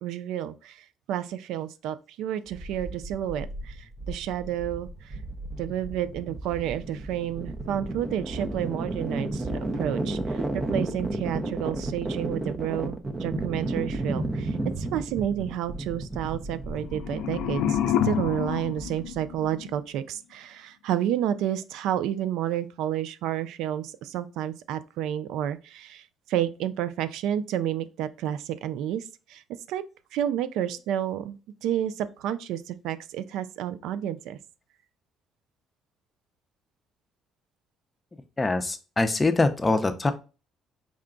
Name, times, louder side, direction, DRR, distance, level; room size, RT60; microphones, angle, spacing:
voice 1, 0.0-5.2 5.6-29.0 29.3-29.4 29.7-29.8 30.1-34.4, right 11 dB, 80° right, 0.3 m, -30 dB
sound 1, 2.5-19.5, right 2 dB, 25° right, 0.6 m, -33 dB
sound 2, 16.7-19.8, left 9 dB, 80° left, 0.4 m, -28 dB
voice 2, 38.4-40.1, left 3 dB, 20° left, 0.6 m, -23 dB
4.8 x 2.2 x 3.7 m
cardioid pair, 100°, 0 cm